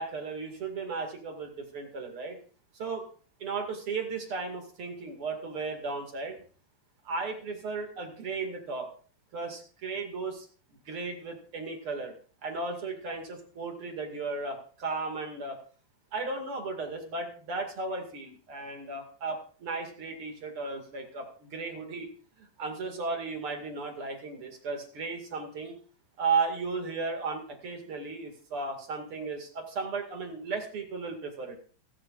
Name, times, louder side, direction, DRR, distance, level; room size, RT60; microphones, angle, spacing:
voice 1, 0.0-2.4 2.7-3.1 3.4-6.4 7.0-8.9 9.3-10.5 10.9-12.1 12.4-15.6 16.1-22.1 22.4-25.8 26.2-31.6, right 4 dB, 40° right, 4 dB, 2.5 m, -35 dB
28.5 x 9.5 x 2.5 m, 0.40 s
omnidirectional pair, 4.6 m